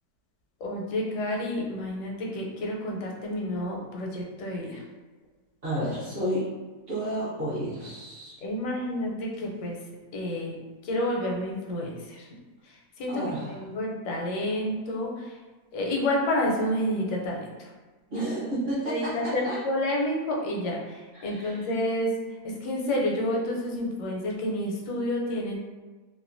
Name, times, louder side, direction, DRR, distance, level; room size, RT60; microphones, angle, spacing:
voice 1, 0.6-4.8 8.4-9.8 10.1-10.6 10.8-12.3 12.6-15.4 15.7-17.7 18.9-22.1 22.4-25.6, left 1 dB, 85° left, -1 dB, 1.2 m, -29 dB
voice 2, 5.6-6.5 6.9-8.3 13.1-13.5 18.1-19.1 19.4-19.6 21.1-21.6, right 1 dB, 50° right, -10 dB, 0.7 m, -31 dB
2.8 x 2.2 x 2.5 m, 1.3 s
omnidirectional pair, 1.7 m